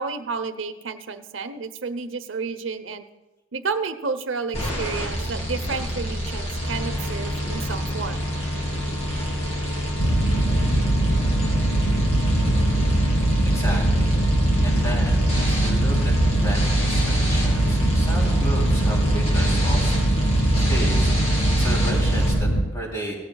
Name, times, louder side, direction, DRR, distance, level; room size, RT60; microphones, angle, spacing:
voice 1, 0.0-3.1 3.5-8.3, right 4 dB, 75° right, 10 dB, 0.8 m, -31 dB
sound 1, 4.5-22.3, equal, 30° left, 3.2 m, -28 dB
sound 2, 10.0-22.6, right 1 dB, 55° left, 1.8 m, -21 dB
voice 2, 13.4-14.2 14.6-19.9 20.7-23.2, equal, 15° left, -2 dB, 3.1 m, -33 dB
17.5 x 13.5 x 2.3 m, 1.1 s
head